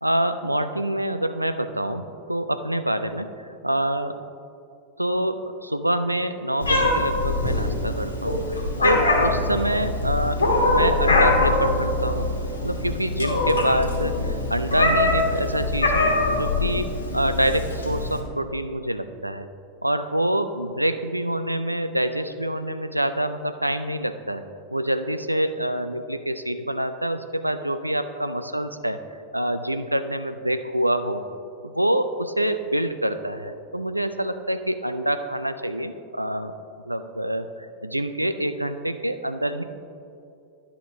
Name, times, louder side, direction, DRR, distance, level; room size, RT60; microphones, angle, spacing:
voice 1, 0.0-4.2 5.0-12.3 12.6-19.5 19.8-24.4 24.7-29.0 29.3-31.2 31.6-36.5 36.8-39.6, right 1 dB, 85° right, 10 dB, 0.3 m, -26 dB
Meow, 6.6-18.2, left 2 dB, 80° left, 1.2 m, -23 dB
10.5 x 5.9 x 3.5 m, 2.6 s
figure-of-eight pair, 90°, 0 cm